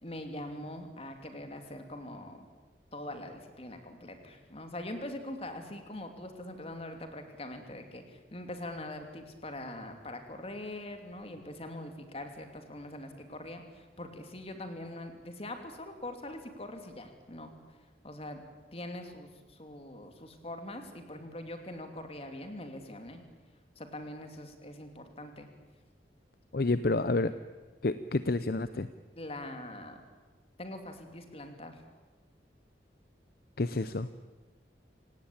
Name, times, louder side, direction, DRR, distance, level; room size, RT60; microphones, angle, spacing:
voice 1, 0.0-2.4 2.9-17.5 18.0-18.4 18.7-23.2 23.8-25.5 29.1-30.0 30.6-31.8, left 1 dB, 35° left, 6 dB, 3.0 m, -43 dB
voice 2, 26.5-27.3 27.8-28.9 33.6-34.1, left 2 dB, 55° left, 13 dB, 0.7 m, -29 dB
27.0 x 18.0 x 8.8 m, 1.3 s
head